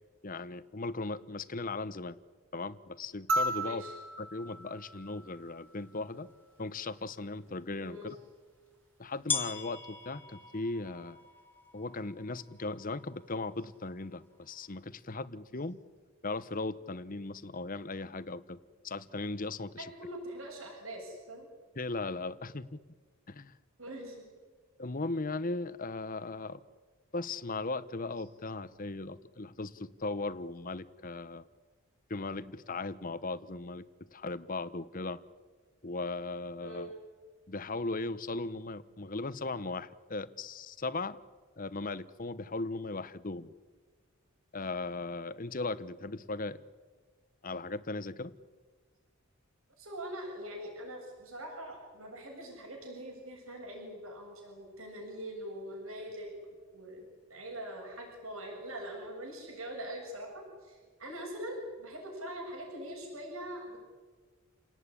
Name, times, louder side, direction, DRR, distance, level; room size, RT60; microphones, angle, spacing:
voice 1, 0.2-2.2 2.5-3.8 4.2-6.3 6.6-8.2 9.0-11.2 11.7-15.8 16.2-18.6 18.8-19.9 21.8-22.8 23.3-23.5 24.8-26.6 27.1-31.4 32.1-33.9 34.1-35.2 35.8-36.9 37.5-41.2 41.6-43.5 44.5-46.6 47.4-48.3, left 3 dB, 40° left, 15 dB, 1.1 m, -37 dB
sound 1, 3.3-5.9 7.5-7.6, right 1 dB, 65° right, 3.2 m, -35 dB
voice 2, 3.6-3.9 7.8-8.1 19.8-21.5 23.8-24.3 36.6-36.9 49.8-56.4 56.7-63.8, right 1 dB, 85° right, 0 dB, 7.7 m, -43 dB
sound 2, 5.3-5.4 6.2-6.3 8.0-8.1 9.3-14.9, left 5 dB, 10° left, 2.2 m, -41 dB
29.5 x 18.5 x 10.0 m, 1.4 s
head